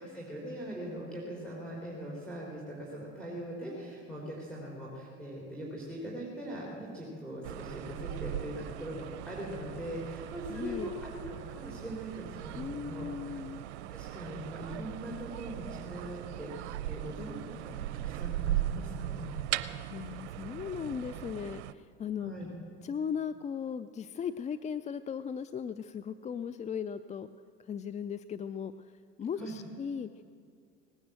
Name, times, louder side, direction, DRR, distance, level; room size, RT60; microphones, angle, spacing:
voice 1, 0.0-13.1 13.3-19.4 22.2-22.5 29.4-29.6, right 1 dB, 5° left, -4 dB, 3.7 m, -41 dB
sound 1, 7.4-21.7, right 12 dB, 85° right, 0.6 m, -39 dB
voice 2, 10.5-10.9 12.5-13.6 19.9-22.3 22.8-27.3 27.6-30.2, left 7 dB, 20° left, 13 dB, 0.3 m, -37 dB
19.0 x 10.0 x 7.5 m, 2.2 s
hypercardioid pair, 80°, 34 cm